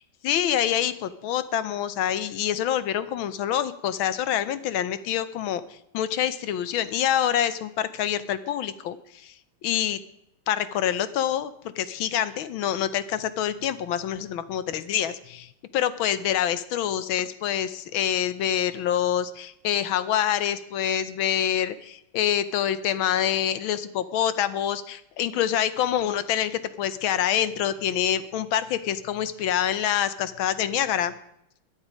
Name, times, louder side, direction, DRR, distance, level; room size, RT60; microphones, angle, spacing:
voice 1, 0.2-5.6 5.9-9.3 9.6-10.0 10.5-31.1, left 10 dB, 75° left, 14 dB, 1.4 m, -26 dB
21.5 x 7.5 x 5.0 m, 0.77 s
omnidirectional pair, 2.4 m